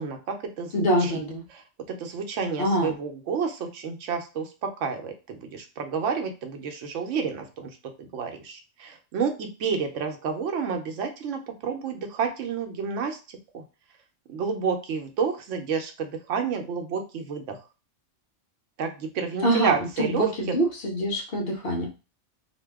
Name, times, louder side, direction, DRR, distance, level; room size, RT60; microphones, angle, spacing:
voice 1, 0.0-1.2 1.5-7.7 8.0-13.6 14.3-17.6 18.8-20.6, right 6 dB, 85° right, 5 dB, 1.0 m, -30 dB
voice 2, 0.7-1.4 2.6-2.9 19.4-19.7 20.0-21.9, right 1 dB, 55° left, 1 dB, 0.9 m, -24 dB
2.8 x 2.2 x 3.4 m, 0.31 s
omnidirectional pair, 1.2 m